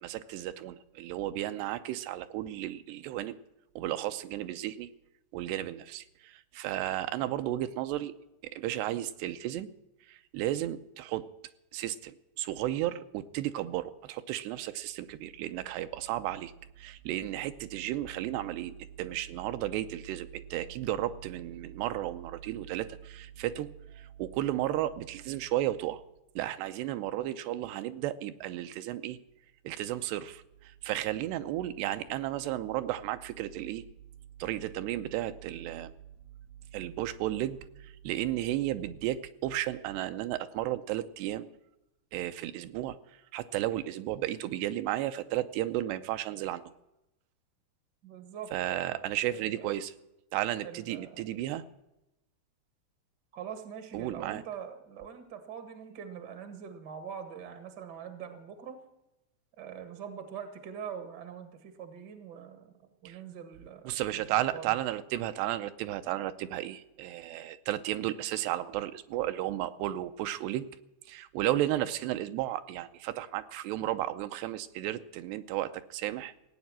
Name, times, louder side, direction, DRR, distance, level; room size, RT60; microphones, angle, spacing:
voice 1, 0.0-3.4 3.8-4.9 5.3-8.1 8.4-9.7 10.1-11.3 11.7-16.5 16.8-26.0 26.4-29.2 29.6-33.9 34.4-35.9 36.7-41.5 42.1-43.0 43.3-46.7 48.5-49.9 50.3-51.6 53.9-54.4 63.1-63.2 63.9-70.7 71.1-76.3, right 13 dB, 80° right, 10 dB, 2.7 m, -33 dB
voice 2, 48.0-49.7 50.6-51.3 53.3-58.8 59.6-64.2 64.5-64.7, right 8 dB, 60° right, 8 dB, 1.1 m, -43 dB
17.0 x 9.0 x 7.5 m, 0.90 s
omnidirectional pair, 4.9 m